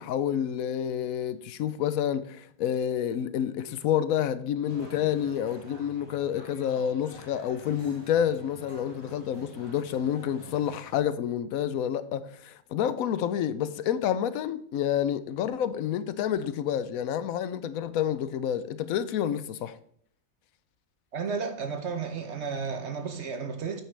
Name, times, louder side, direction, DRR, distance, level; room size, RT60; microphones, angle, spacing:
voice 1, 0.0-19.8, left 9 dB, 90° left, 1.0 m, -29 dB
sound 1, 4.7-11.0, equal, 15° right, 4.1 m, -49 dB
voice 2, 21.1-23.8, right 5 dB, 55° right, 1.1 m, -33 dB
9.0 x 8.4 x 3.3 m
omnidirectional pair, 1.4 m